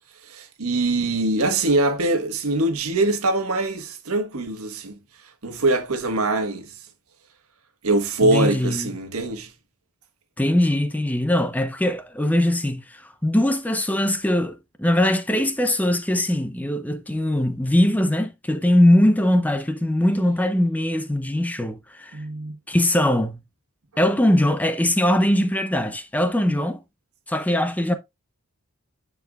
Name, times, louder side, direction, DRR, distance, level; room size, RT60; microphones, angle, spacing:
voice 1, 0.3-5.0 5.4-6.7 7.8-9.5 22.1-22.6, right 2 dB, 85° right, 1.3 m, -23 dB
voice 2, 8.2-8.9 10.4-22.2 22.7-23.4 24.0-26.8 27.3-28.0, left 1 dB, 5° left, 0.6 m, -21 dB
9.9 x 4.7 x 2.3 m
head